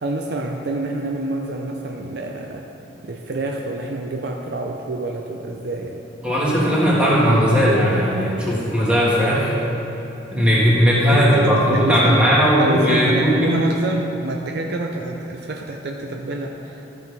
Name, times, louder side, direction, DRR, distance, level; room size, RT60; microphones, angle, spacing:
voice 1, 0.0-2.7 3.0-6.0 11.1-12.3 12.6-16.9, right 2 dB, 55° right, 2 dB, 0.5 m, -27 dB
voice 2, 6.2-9.5 10.3-13.5, equal, 5° right, -7 dB, 1.6 m, -17 dB
13.0 x 6.4 x 3.4 m, 3.0 s
head